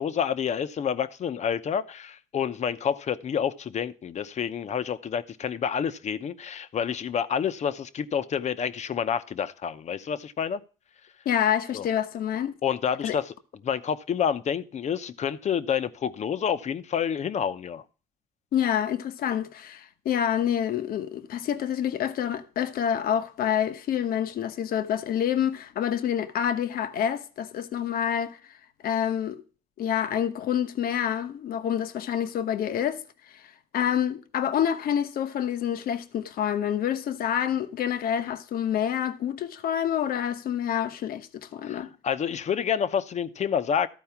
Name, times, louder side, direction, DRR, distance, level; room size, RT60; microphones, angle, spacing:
voice 1, 0.0-10.6 11.7-11.9 12.6-13.3 13.6-17.8 41.6-43.9, left 8 dB, 40° left, 0.8 m, -28 dB
voice 2, 11.2-12.5 13.0-13.2 18.5-28.4 28.8-29.4 29.8-33.0 33.3-41.9, left 9 dB, 60° left, 1.0 m, -27 dB
14.0 x 4.6 x 5.9 m
cardioid pair, 110°, 17 cm